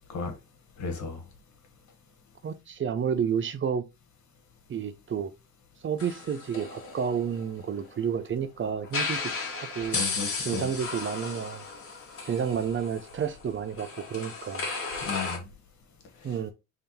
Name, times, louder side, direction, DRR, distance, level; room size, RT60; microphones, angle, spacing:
voice 1, 0.8-1.2 9.9-10.7 15.1-15.4 16.2-16.4, left 4 dB, 70° left, 1.7 m, -34 dB
voice 2, 2.4-3.8 4.7-5.3 5.8-9.2 9.5-10.0 10.4-11.6 12.2-14.6 16.2-16.5, right 7 dB, 40° right, 0.6 m, -30 dB
sound 1, 6.0-8.1 8.8-15.4, left 4 dB, 45° left, 1.8 m, -35 dB
3.6 x 3.4 x 4.3 m
cardioid pair, 90°, 30 cm